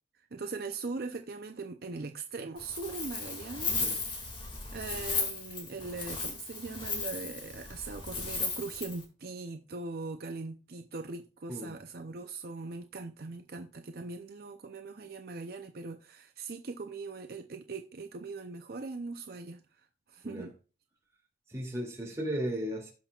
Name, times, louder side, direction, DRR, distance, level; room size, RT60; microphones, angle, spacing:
voice 1, 0.3-3.8 4.0-4.3 4.7-19.6 20.1-20.6, right 3 dB, 55° right, 0.6 m, -40 dB
Wind, 2.6-9.0, left 4 dB, 25° left, 2.1 m, -36 dB
voice 2, 21.5-22.9, equal, 15° right, 2.4 m, -35 dB
16.5 x 5.9 x 2.4 m
head